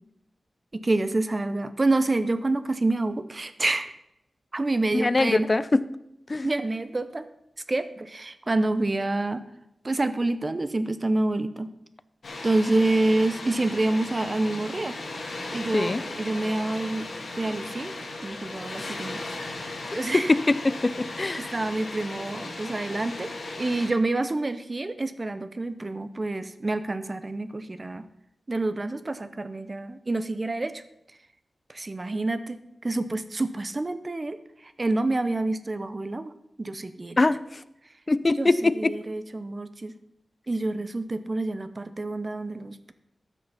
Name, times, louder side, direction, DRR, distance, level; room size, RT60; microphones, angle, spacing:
voice 1, 0.7-3.9 4.5-5.5 6.4-7.3 7.7-9.4 9.8-11.7 12.4-15.0 15.5-17.1 17.4-17.9 18.2-19.3 19.9-20.3 21.4-23.3 23.6-28.0 28.5-30.8 31.7-34.4 34.8-36.3 36.6-37.2 38.4-39.9 40.5-42.9, right 2 dB, 30° right, 12 dB, 0.7 m, -27 dB
voice 2, 4.9-5.8 6.3-6.5 15.7-16.0 18.8-18.9 19.8-21.5 37.2-37.4 38.1-38.9, left 2 dB, 30° left, 16 dB, 0.5 m, -23 dB
Water, 12.2-23.9, left 2 dB, 65° left, 2.4 m, -37 dB
13.0 x 6.2 x 5.6 m, 0.84 s
wide cardioid pair, 105°, 0 cm